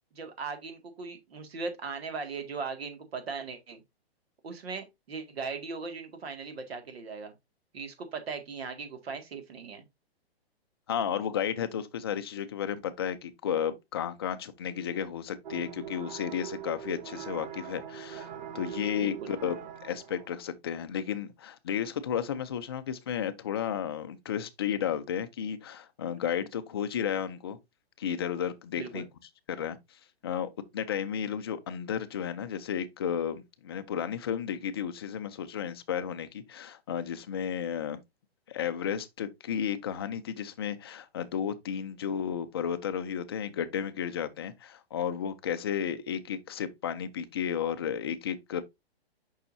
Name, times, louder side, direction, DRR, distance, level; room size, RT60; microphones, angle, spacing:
voice 1, 0.1-3.8 4.4-7.3 7.7-9.8 19.0-19.3 28.8-29.1, right 4 dB, 70° right, 2.0 m, -38 dB
voice 2, 10.9-19.6 19.8-27.6 28.0-29.0 29.5-29.8 30.2-38.0 38.5-48.6, left 8 dB, 25° left, 0.4 m, -33 dB
sound 1, 15.4-20.4, right 9 dB, 45° right, 0.8 m, -42 dB
6.9 x 5.5 x 2.6 m
hypercardioid pair, 160°, 31 cm